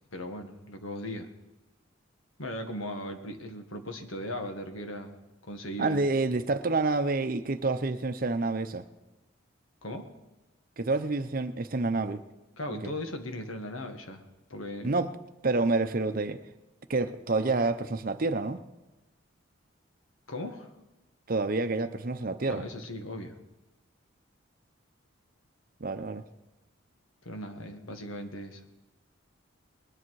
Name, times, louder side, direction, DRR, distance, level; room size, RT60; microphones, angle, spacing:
voice 1, 0.1-1.3 2.4-5.2 5.4-6.0 9.8-10.1 12.6-14.2 14.5-14.9 20.3-20.7 22.5-23.3 27.3-28.6, left 1 dB, 85° left, 5 dB, 1.6 m, -38 dB
voice 2, 5.8-8.8 10.8-12.2 12.7-12.9 14.8-15.1 15.4-16.4 16.9-18.6 21.3-22.6 25.8-26.2, right 3 dB, 45° right, 10 dB, 0.7 m, -28 dB
20.5 x 10.0 x 4.7 m, 1.1 s
head